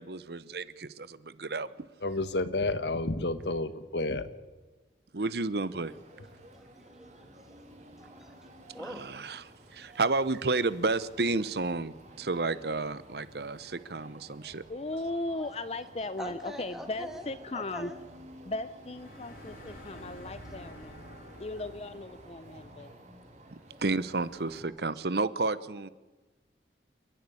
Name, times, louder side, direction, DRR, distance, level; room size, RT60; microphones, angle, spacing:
voice 1, 0.0-1.7 5.1-5.9 8.8-14.6 23.8-25.9, right 3 dB, 65° right, 0.8 m, -31 dB
voice 2, 2.0-4.3, left 2 dB, 75° left, 1.4 m, -30 dB
sound 1, 5.6-24.6, right 1 dB, 40° right, 3.5 m, -52 dB
voice 3, 6.9-7.6 8.0-8.4 8.7-9.1 15.4-15.5 16.2-17.3 17.5-18.0 20.5-20.7, equal, 5° right, 2.1 m, -43 dB
voice 4, 14.7-17.9 18.5-21.0 21.4-22.9, left 2 dB, 35° left, 0.6 m, -37 dB
sound 2, 18.8-22.6, left 1 dB, 55° left, 3.5 m, -50 dB
29.0 x 11.0 x 9.9 m
head